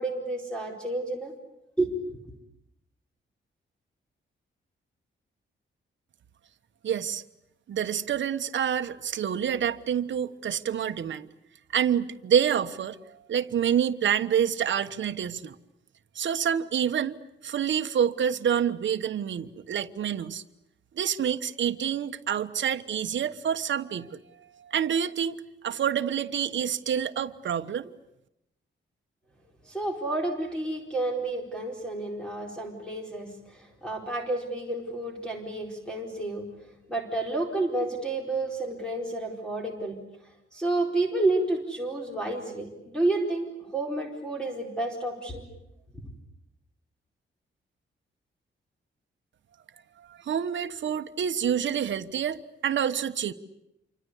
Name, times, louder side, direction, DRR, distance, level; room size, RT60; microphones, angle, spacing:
voice 1, 0.0-1.3 1.8-2.2 29.7-36.5 36.9-40.0 40.5-45.4, right 2 dB, 5° left, 0 dB, 4.5 m, -30 dB
voice 2, 6.8-7.2 7.7-11.3 11.7-13.0 13.3-15.5 16.1-20.4 21.0-24.2 24.6-25.4 25.6-27.9 50.2-53.3, right 8 dB, 65° right, 8 dB, 1.2 m, -27 dB
28.0 x 24.5 x 8.3 m, 0.87 s
wide cardioid pair, 150°, 20 cm